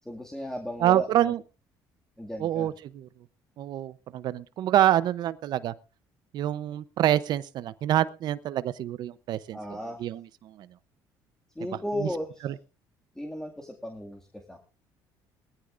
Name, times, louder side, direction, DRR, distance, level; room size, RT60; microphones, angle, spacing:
voice 1, 0.0-1.3 2.2-2.7 9.5-10.0 11.6-12.5 13.1-14.6, left 1 dB, 5° left, 2.2 m, -35 dB
voice 2, 0.8-1.4 2.4-3.1 3.6-5.7 6.3-9.6 10.0-10.7 12.4-12.5, right 12 dB, 60° right, 0.8 m, -26 dB
21.0 x 15.0 x 2.6 m
cardioid pair, 115°, 8 cm